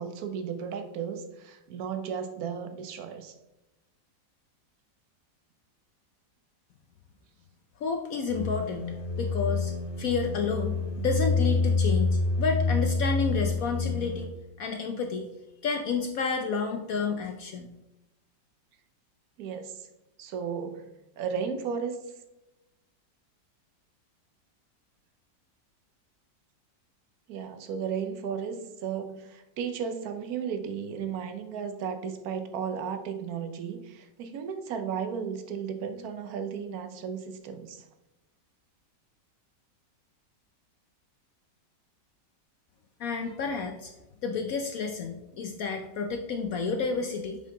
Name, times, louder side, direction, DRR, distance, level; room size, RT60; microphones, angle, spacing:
voice 1, 0.0-3.3 19.4-19.9 20.2-20.9 21.2-22.0 27.3-37.8, right 7 dB, 65° right, 1.1 m, -34 dB
voice 2, 7.8-9.7 10.0-14.3 14.6-15.3 15.6-17.7 43.0-43.9 44.2-47.4, left 5 dB, 65° left, 0.9 m, -30 dB
sound 1, 8.3-14.3, left 3 dB, 30° left, 1.6 m, -27 dB
7.4 x 5.5 x 3.7 m
omnidirectional pair, 1.9 m